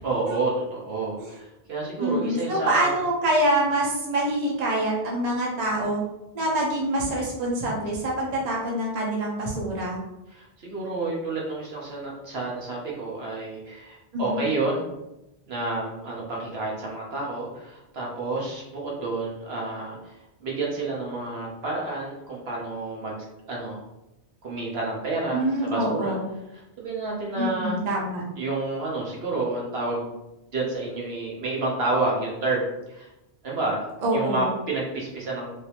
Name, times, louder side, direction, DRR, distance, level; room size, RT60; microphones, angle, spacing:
voice 1, 0.0-2.9 10.3-14.9 15.5-20.1 20.4-23.2 23.5-23.8 24.4-26.2 26.5-27.8 28.4-30.2 30.5-33.1 33.4-33.8 34.1-35.5, right 2 dB, 65° right, -3 dB, 1.0 m, -29 dB
voice 2, 2.0-6.0 6.3-10.0 14.1-14.4 25.3-26.2 27.4-28.2 34.0-34.5, right 1 dB, 40° right, -3 dB, 0.8 m, -25 dB
3.2 x 2.7 x 2.9 m, 0.90 s
omnidirectional pair, 1.2 m